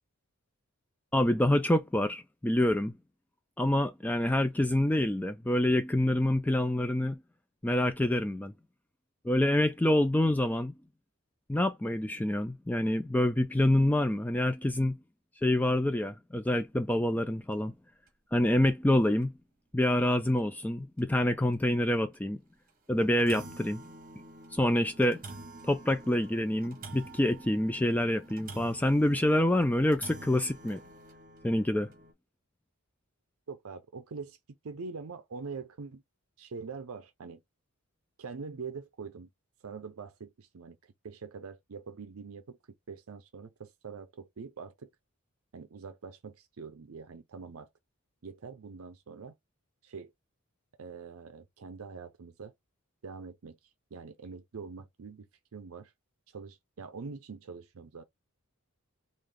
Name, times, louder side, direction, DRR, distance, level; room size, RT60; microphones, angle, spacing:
voice 1, 1.1-2.9 3.6-7.2 7.6-8.5 9.2-10.7 11.5-14.9 15.4-17.7 18.3-19.3 19.7-22.4 22.9-23.8 24.5-25.2 25.7-30.8 31.4-31.9, left 1 dB, 5° left, 0.3 m, -27 dB
sound 1, 16.9-17.1 17.5-17.6 18.1-18.2 19.2-19.3 19.8-19.9 20.4-20.5 21.0-21.1 22.1-22.3 22.7-22.8 23.0-32.1, right 2 dB, 40° right, 1.0 m, -48 dB
voice 2, 33.5-34.4 34.6-36.0 36.4-37.4 38.2-39.3 39.6-42.6 42.9-44.9 45.5-47.7 48.2-49.3 49.8-50.1 50.8-52.5 53.0-53.6 53.9-55.3 55.5-55.9 56.3-58.0, right 5 dB, 70° right, 0.5 m, -44 dB
3.3 x 2.5 x 3.7 m
head